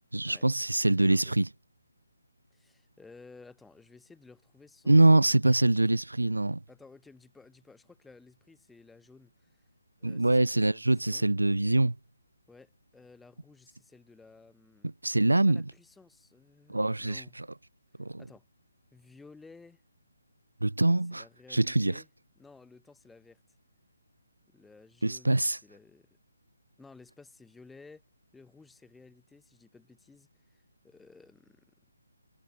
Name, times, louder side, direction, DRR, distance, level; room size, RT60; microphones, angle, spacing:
voice 1, 0.1-1.5 4.9-6.6 10.0-12.0 14.8-15.6 16.7-17.5 18.0-18.2 20.6-21.2 21.5-22.0 25.0-25.6, right 2 dB, 90° right, 0.5 m, -24 dB
voice 2, 0.9-1.4 2.5-5.4 6.7-9.6 10.0-11.3 12.5-14.9 15.5-17.4 18.2-18.5 18.9-19.8 21.1-22.1 22.4-23.4 24.5-26.1 26.8-28.0 28.3-31.7, left 4 dB, 5° left, 4.0 m, -55 dB
figure-of-eight pair, 150°, 0 cm